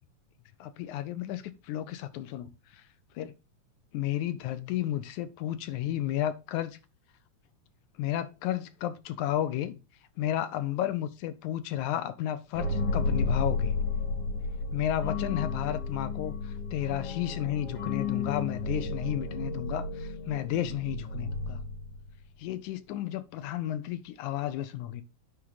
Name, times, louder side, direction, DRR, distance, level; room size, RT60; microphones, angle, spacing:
voice 1, 0.6-2.8 3.2-3.3 3.9-6.8 8.0-9.8 10.2-13.8 14.7-21.6 22.4-25.0, left 12 dB, 80° left, 2.1 m, -32 dB
sound 1, 12.5-22.2, left 3 dB, 50° left, 3.6 m, -32 dB
9.6 x 4.5 x 3.9 m
omnidirectional pair, 3.5 m